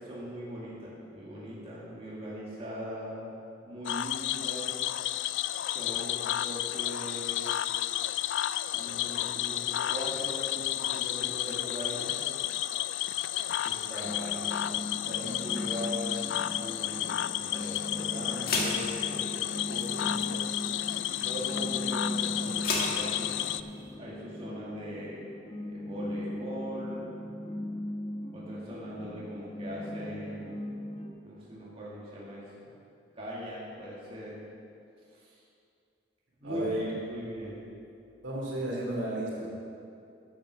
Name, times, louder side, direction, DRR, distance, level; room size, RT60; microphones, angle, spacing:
voice 1, 0.0-3.3 3.6-4.7 5.6-7.5 8.7-12.2 13.6-16.3 16.5-20.5 21.1-23.3 23.9-25.2 25.7-27.2 28.3-30.7 31.2-32.7 33.1-34.4 35.1-35.4 36.4-37.6, equal, 30° right, -7 dB, 2.0 m, -40 dB
Cricket / Frog, 3.8-23.6, left 12 dB, 70° left, 0.3 m, -32 dB
sound 1, 14.0-31.1, left 1 dB, 35° left, 1.0 m, -38 dB
sound 2, 16.2-23.9, left 3 dB, 50° left, 1.7 m, -38 dB
voice 2, 36.4-36.8 38.2-39.5, right 1 dB, 75° right, -4 dB, 2.9 m, -33 dB
10.5 x 7.4 x 6.3 m, 2.5 s
head